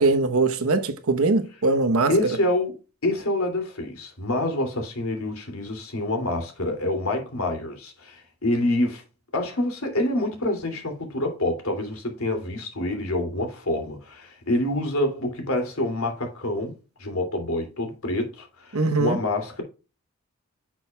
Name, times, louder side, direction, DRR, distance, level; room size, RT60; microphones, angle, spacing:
voice 1, 0.0-2.1 18.7-19.2, right 3 dB, 80° right, 1.0 m, -21 dB
voice 2, 2.1-9.0 9.3-19.6, left 1 dB, 75° left, 2.7 m, -27 dB
9.7 x 6.2 x 2.3 m
head